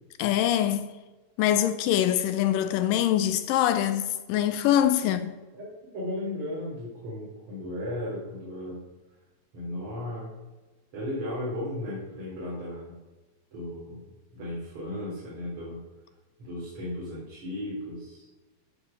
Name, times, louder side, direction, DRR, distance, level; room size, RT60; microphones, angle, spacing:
voice 1, 0.2-0.9 1.4-5.3, left 11 dB, 80° left, 2.1 m, -24 dB
voice 2, 5.9-8.8 9.5-10.3 10.9-13.0 13.5-14.1 14.3-15.8 16.4-18.2, left 1 dB, 40° right, 3.6 m, -35 dB
14.0 x 5.0 x 5.4 m
omnidirectional pair, 4.2 m